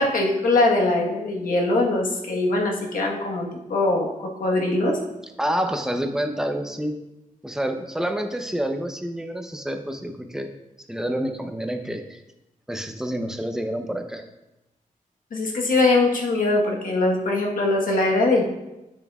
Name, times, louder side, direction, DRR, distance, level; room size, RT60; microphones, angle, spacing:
voice 1, 0.0-5.0 15.3-18.4, left 2 dB, 85° left, 0 dB, 1.2 m, -22 dB
voice 2, 5.4-6.9 7.4-10.5 10.9-12.2 12.7-14.2, right 1 dB, 5° right, 5 dB, 0.6 m, -28 dB
8.3 x 7.1 x 2.3 m, 0.96 s
wide cardioid pair, 115°, 14 cm